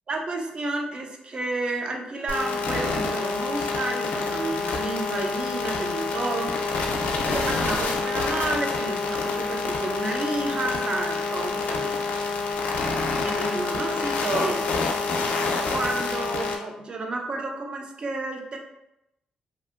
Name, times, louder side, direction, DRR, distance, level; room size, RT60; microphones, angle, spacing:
voice 1, 0.1-6.9 7.2-11.9 13.2-14.6 15.6-18.6, right 2 dB, 40° right, 2 dB, 0.5 m, -31 dB
sound 1, 2.3-16.6, left 4 dB, 80° left, 0.4 m, -27 dB
2.6 x 2.5 x 2.4 m, 0.86 s
cardioid pair, 80°, 2 cm